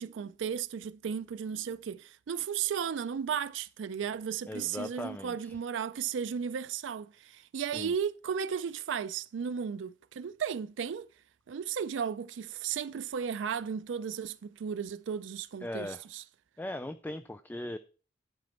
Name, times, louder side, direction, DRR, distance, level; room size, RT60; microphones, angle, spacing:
voice 1, 0.0-11.1 11.5-16.2, right 7 dB, 85° right, 0.4 m, -35 dB
voice 2, 4.5-5.6 7.7-7.9 15.6-16.1 16.6-17.8, left 1 dB, 10° left, 0.3 m, -39 dB
11.5 x 5.1 x 4.3 m
head